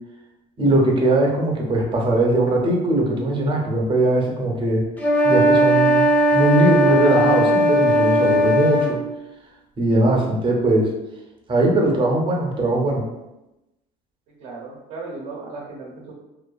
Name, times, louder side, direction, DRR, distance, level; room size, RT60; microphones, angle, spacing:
voice 1, 0.6-4.8 5.2-9.0 9.8-10.9 11.5-13.0, right 2 dB, 30° right, 0 dB, 0.6 m, -20 dB
sound 1, 5.0-8.9, equal, 10° left, 0.4 m, -17 dB
voice 2, 14.4-16.1, right 3 dB, 80° right, -4 dB, 0.7 m, -36 dB
2.6 x 2.3 x 2.3 m, 0.96 s
supercardioid pair, 100°, 17 cm